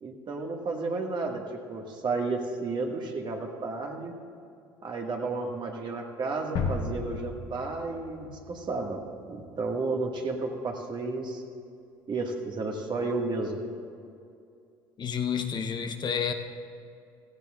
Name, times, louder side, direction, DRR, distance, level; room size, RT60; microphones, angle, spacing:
voice 1, 0.0-4.1 4.8-9.0 9.3-11.4 12.1-13.6, right 3 dB, 40° right, 1 dB, 1.9 m, -32 dB
sound 1, 6.6-9.4, left 4 dB, 60° left, 1.5 m, -34 dB
voice 2, 15.0-16.3, left 7 dB, 40° left, 6 dB, 0.9 m, -30 dB
17.0 x 15.5 x 2.5 m, 2.4 s
hypercardioid pair, 65°, 12 cm